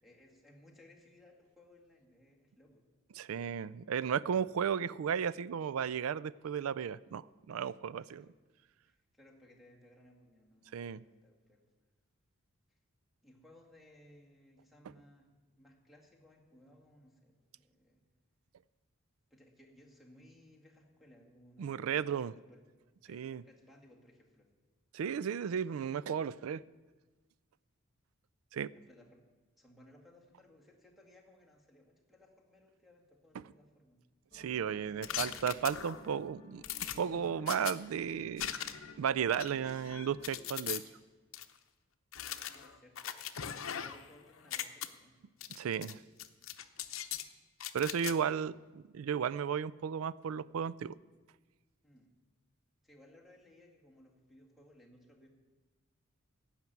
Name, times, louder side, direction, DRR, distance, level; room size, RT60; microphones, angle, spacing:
voice 1, 0.0-2.8 8.0-8.3 8.8-11.6 13.2-18.0 19.3-22.6 23.0-24.5 28.7-29.3 29.6-34.0 42.5-45.3 47.9-48.5 51.8-52.1 52.8-55.3, left 1 dB, ahead, 1 dB, 2.0 m, -61 dB
voice 2, 3.2-8.3 10.7-11.0 21.6-22.3 23.1-23.4 24.9-26.6 28.5-28.7 34.3-36.6 37.0-38.5 39.0-40.8 45.6-46.0 47.7-48.5 48.9-51.0, right 7 dB, 85° right, 19 dB, 0.4 m, -34 dB
sound 1, 34.3-40.4, left 1 dB, 25° left, 1.7 m, -56 dB
sound 2, 35.0-36.1 36.6-37.7 38.4-38.9 39.3-40.8 41.3-41.4 42.1-44.1 44.4-44.9 45.4-45.9 46.2-47.3 47.6-48.1, left 10 dB, 70° left, 0.7 m, -40 dB
15.5 x 5.9 x 9.2 m, 1.3 s
head